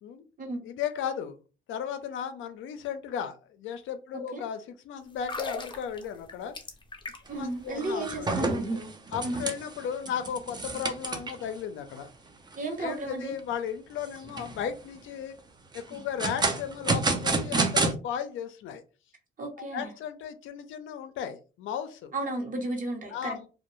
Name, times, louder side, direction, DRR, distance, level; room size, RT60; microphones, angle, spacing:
voice 1, 0.6-1.4 1.7-6.6 7.4-8.5 9.1-12.1 12.8-15.4 15.7-18.8 19.7-22.1 23.1-23.5, left 8 dB, 80° left, 9 dB, 0.5 m, -35 dB
sound 1, 5.1-7.5 7.7-7.9, left 3 dB, 25° left, 0.6 m, -38 dB
sound 2, 7.3-7.4 7.8-11.5 12.0-12.1 12.5-12.6 13.1-13.5 14.1-14.7 15.7-17.9, right 3 dB, 20° right, 0.5 m, -29 dB
voice 2, 7.3-8.5 9.2-9.4 12.5-13.3 19.4-19.9 22.1-23.4, right 2 dB, 45° right, 2 dB, 0.9 m, -33 dB
2.3 x 2.1 x 3.0 m, 0.33 s
cardioid pair, 90°, 20 cm